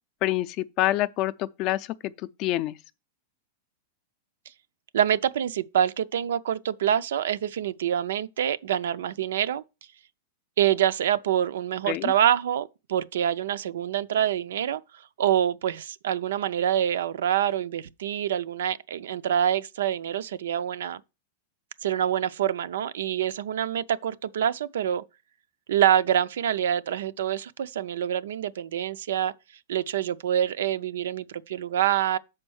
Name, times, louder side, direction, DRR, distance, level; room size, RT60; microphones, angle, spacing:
voice 1, 0.2-2.1 2.4-2.7 11.9-12.1, left 15 dB, 35° left, 0.4 m, -26 dB
voice 2, 4.9-9.6 10.6-14.8 15.2-21.0 21.8-25.0 25.7-29.3 29.7-32.2, right 10 dB, 85° right, 0.4 m, -26 dB
6.1 x 4.4 x 6.2 m
supercardioid pair, 155°, 0 cm